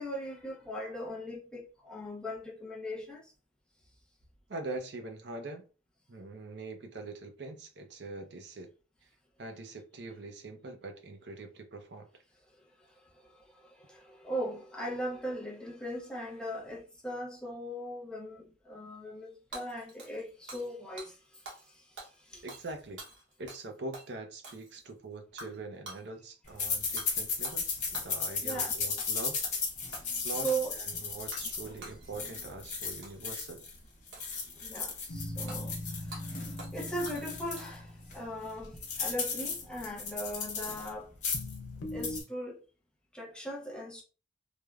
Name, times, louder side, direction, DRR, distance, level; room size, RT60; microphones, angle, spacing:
voice 1, 0.0-3.3 12.6-12.7 13.0-22.4 28.4-28.8 30.2-30.8 34.6-41.1 41.9-42.6 43.1-44.0, right 1 dB, 5° left, 0.5 m, -39 dB
voice 2, 4.5-5.6 6.1-8.7 9.4-12.2 22.4-23.0 23.4-29.4 30.2-33.6, right 2 dB, 60° right, 0.5 m, -43 dB
Hammer / Shatter, 19.5-20.7 21.0-21.1 21.5-21.7 22.0-23.7 23.9-24.1 24.4-24.9 25.4-25.6 25.9-26.0 27.0-27.1 27.4-28.2 28.5-28.7 29.0-29.6 29.9-30.7 31.3-31.6 31.8-32.4 33.0-33.3 34.1-34.7 35.5-35.6 36.1-36.2 36.6-36.8 37.1-37.9, right 2 dB, 75° right, 0.9 m, -47 dB
sound 1, 26.6-33.7 34.1-37.7 38.1-38.2 38.4-40.9 41.1-41.6 41.9-42.2, left 5 dB, 40° left, 0.9 m, -35 dB
sound 2, 35.1-40.2 41.3-42.2, left 1 dB, 75° left, 0.6 m, -41 dB
3.2 x 2.1 x 2.3 m
head